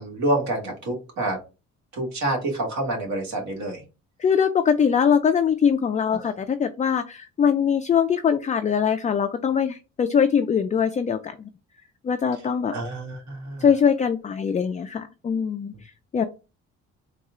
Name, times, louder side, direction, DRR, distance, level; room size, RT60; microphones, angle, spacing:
voice 1, 0.0-1.4 1.9-3.8 6.1-6.2 12.7-13.6, right 1 dB, 65° right, 1 dB, 1.7 m, -27 dB
voice 2, 4.2-11.5 12.0-12.7 13.6-16.2, left 7 dB, 25° left, 7 dB, 0.3 m, -22 dB
4.2 x 2.4 x 3.6 m, 0.30 s
cardioid pair, 90°, 30 cm